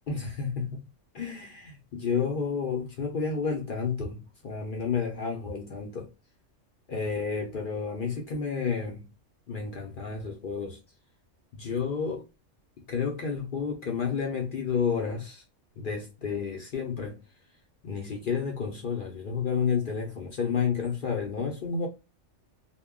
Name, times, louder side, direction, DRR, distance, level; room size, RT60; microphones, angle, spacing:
voice 1, 0.1-0.9 1.1-6.1 6.9-9.1 9.5-10.8 11.5-12.2 12.9-15.4 15.8-17.2 17.8-21.9, left 6 dB, 55° left, 0.6 m, -31 dB
2.1 x 2.1 x 3.5 m
omnidirectional pair, 1.3 m